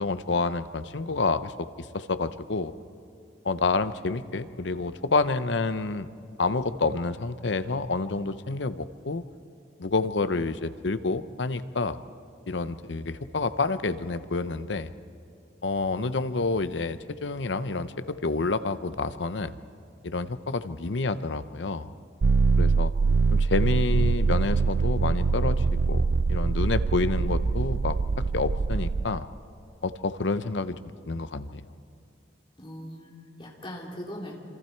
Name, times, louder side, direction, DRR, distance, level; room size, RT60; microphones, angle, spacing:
voice 1, 0.0-2.7 3.4-6.1 6.4-9.2 9.8-12.0 12.5-14.9 15.6-19.6 20.0-21.9 22.6-22.9 23.3-26.0 26.3-29.3 29.8-30.8 31.1-31.6, left 3 dB, 75° left, 12 dB, 0.8 m, -28 dB
sound 1, 22.2-29.1, right 4 dB, 60° right, 0.4 m, -24 dB
voice 2, 32.6-34.3, equal, 25° left, -2 dB, 3.2 m, -40 dB
27.0 x 26.5 x 4.6 m, 2.5 s
head